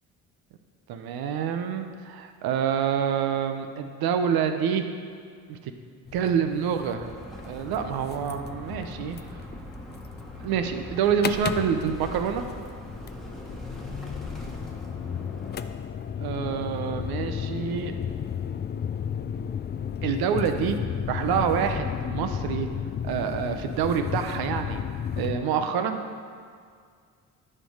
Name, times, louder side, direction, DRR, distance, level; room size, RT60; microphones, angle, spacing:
voice 1, 0.9-4.9 5.5-5.7 6.1-7.1 7.5-9.2 10.4-12.4 16.2-17.9 20.0-20.8 21.1-22.7 23.0-24.8 25.2-26.0, right 7 dB, 70° right, 7 dB, 0.8 m, -27 dB
sound 1, 6.1-25.4, left 8 dB, 30° left, 0.4 m, -34 dB
sound 2, 7.0-15.6, equal, ahead, 1.4 m, -42 dB
10.0 x 4.5 x 4.9 m, 2.1 s
supercardioid pair, 60°, 38 cm